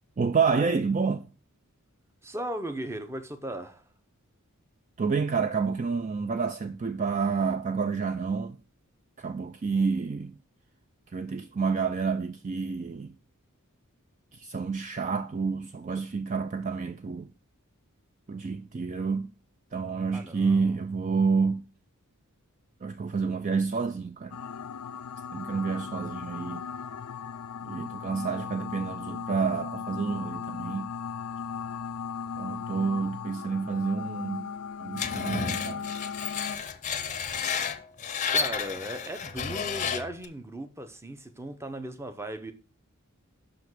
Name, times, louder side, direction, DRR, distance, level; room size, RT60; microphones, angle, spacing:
voice 1, 0.2-1.3 5.0-8.6 9.2-10.3 11.1-13.2 14.3-17.3 18.3-19.3 19.7-21.6 22.8-24.4 25.3-26.7 27.6-30.9 32.4-34.5 34.8-35.9, right 5 dB, 35° right, 0.4 m, -29 dB
voice 2, 2.2-3.8 20.1-20.8 38.3-42.5, right 1 dB, 10° right, 0.7 m, -37 dB
sound 1, 24.3-36.6, left 6 dB, 90° left, 0.4 m, -37 dB
Screech, 35.0-40.3, left 6 dB, 35° left, 0.6 m, -31 dB
5.8 x 5.1 x 6.1 m
head